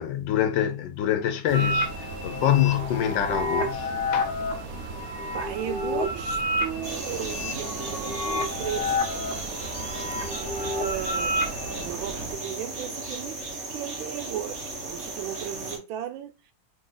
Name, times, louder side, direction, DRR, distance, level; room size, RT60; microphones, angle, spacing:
voice 1, 0.0-4.3, left 10 dB, 80° left, 1.3 m, -25 dB
sound 1, 1.5-11.9, left 1 dB, 50° left, 0.6 m, -30 dB
sound 2, 1.5-12.4, right 4 dB, 70° right, 0.8 m, -39 dB
voice 2, 5.2-9.7 10.6-13.4 13.7-16.3, right 11 dB, 90° right, 1.4 m, -36 dB
sound 3, 6.8-15.8, right 2 dB, 45° right, 1.1 m, -36 dB
3.4 x 2.5 x 3.8 m
omnidirectional pair, 2.1 m